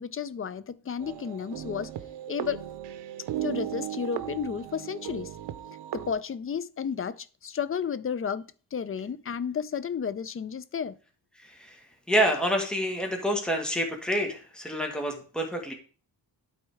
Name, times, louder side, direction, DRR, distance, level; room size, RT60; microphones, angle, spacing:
voice 1, 0.0-1.9 2.3-2.6 3.4-5.4 5.7-8.4 8.7-10.9, left 7 dB, 35° left, 0.5 m, -32 dB
sound 1, 1.0-6.1, right 12 dB, 90° right, 0.7 m, -36 dB
voice 2, 11.4-11.8 12.1-15.7, equal, ahead, 1.5 m, -28 dB
12.0 x 4.2 x 3.5 m
cardioid pair, 105°, 40 cm